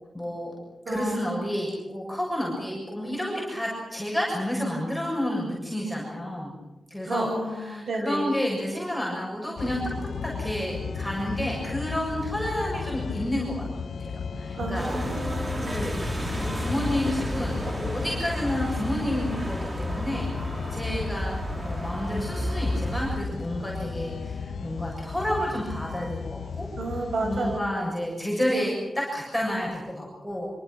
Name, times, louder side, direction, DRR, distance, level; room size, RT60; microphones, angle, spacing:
voice 1, 0.1-0.5 0.9-6.5 6.9-7.3 7.7-9.8 10.2-13.6 14.0-14.1 14.4-14.9 15.7-16.0 16.3-20.3 20.7-21.4 21.6-26.7 27.2-30.5, equal, ahead, -3 dB, 7.2 m, -30 dB
voice 2, 0.8-1.5 7.1-8.3 14.5-15.8 26.8-27.7, right 2 dB, 70° right, 5 dB, 6.1 m, -31 dB
sound 1, 9.6-27.6, left 5 dB, 80° left, 1.5 m, -34 dB
sound 2, 14.7-23.2, equal, 30° right, 4.7 m, -32 dB
26.0 x 26.0 x 6.4 m, 1.1 s
wide cardioid pair, 130°, 0 cm